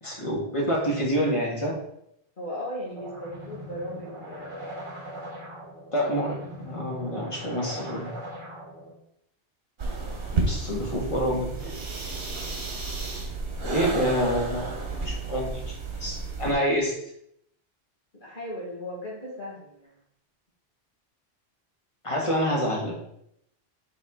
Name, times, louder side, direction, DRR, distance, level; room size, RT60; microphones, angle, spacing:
voice 1, 0.0-1.8 5.9-8.1 10.3-11.7 13.6-14.7 15.0-15.7 16.0-17.0 22.0-22.9, equal, 30° left, -2 dB, 1.6 m, -27 dB
voice 2, 2.4-4.8 18.1-19.9, equal, 50° left, -5 dB, 1.6 m, -37 dB
sound 1, 2.9-8.9, equal, 30° right, 1.6 m, -40 dB
sound 2, 9.8-16.5, right 3 dB, 60° right, 1.4 m, -32 dB
7.4 x 3.6 x 3.6 m, 0.74 s
omnidirectional pair, 1.1 m